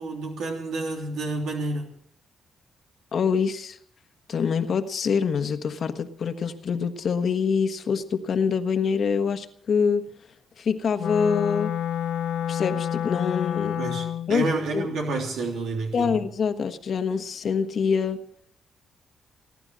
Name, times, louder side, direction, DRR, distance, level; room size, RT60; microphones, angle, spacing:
voice 1, 0.0-1.9 13.8-16.2, right 3 dB, 80° right, 1 dB, 3.2 m, -29 dB
voice 2, 3.1-3.8 4.3-10.0 10.6-11.7 12.5-13.8 14.3-14.5 14.7-14.9 15.9-18.2, left 6 dB, 55° left, 8 dB, 1.3 m, -25 dB
Wind instrument woodwind instrument, 11.0-14.4, left 10 dB, 90° left, 0.8 m, -28 dB
19.5 x 11.0 x 6.3 m, 0.65 s
cardioid pair, 110°, 0 cm